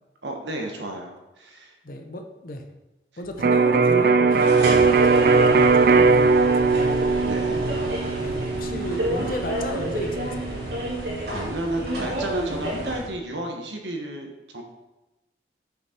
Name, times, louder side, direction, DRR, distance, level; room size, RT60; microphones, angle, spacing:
voice 1, 0.2-1.7 3.4-3.5 7.2-7.6 11.3-14.3 14.5-14.6, right 1 dB, 85° right, 2 dB, 1.3 m, -31 dB
voice 2, 1.8-2.6 3.2-7.0 8.2-10.5, left 1 dB, 50° left, 5 dB, 0.8 m, -34 dB
Electric guitar, 3.4-11.2, right 4 dB, 55° right, 0.3 m, -20 dB
sound 1, 4.3-13.1, equal, 70° right, 2.5 m, -30 dB
6.4 x 6.1 x 4.4 m, 1.1 s
head